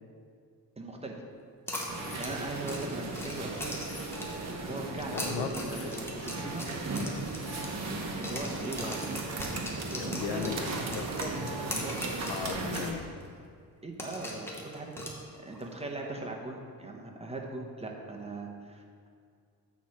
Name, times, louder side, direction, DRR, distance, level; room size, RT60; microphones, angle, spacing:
voice 1, 0.8-1.2 2.2-3.7 4.6-6.7 8.2-9.0 9.9-10.5 10.8-12.0 13.8-14.9 15.4-19.1, right 2 dB, 15° right, 0 dB, 0.8 m, -40 dB
sound 1, 1.7-2.6 3.5-4.5 5.3-6.3 7.1-8.1, left 3 dB, 40° left, 1.2 m, -51 dB
sound 2, 1.7-4.5 5.0-8.0 8.2-12.9 13.2-13.3 14.0-15.6, equal, 5° left, 0.9 m, -40 dB
sound 3, 1.9-12.9, right 3 dB, 45° right, 0.9 m, -36 dB
voice 2, 5.1-6.3 8.8-9.1 10.0-10.7 10.9-11.1 11.7-13.1, left 8 dB, 80° left, 8 dB, 0.6 m, -38 dB
8.3 x 4.2 x 6.2 m, 2.1 s
wide cardioid pair, 155°, 38 cm